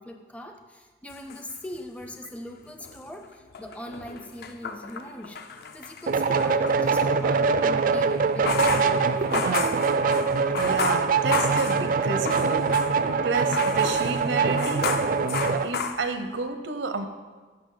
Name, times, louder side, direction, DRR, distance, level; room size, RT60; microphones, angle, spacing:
voice 1, 0.0-5.4 5.7-9.9, left 1 dB, 5° left, 4 dB, 0.5 m, -41 dB
sound 1, 1.1-2.3 2.7-6.8 8.3-13.2 13.5-16.5, left 5 dB, 60° left, 0.5 m, -33 dB
sound 2, 6.1-15.7, right 5 dB, 50° right, 0.4 m, -23 dB
voice 2, 10.6-12.7 13.2-14.9 15.6-17.1, right 4 dB, 90° right, 8 dB, 0.8 m, -30 dB
13.0 x 5.4 x 3.9 m, 1.4 s
head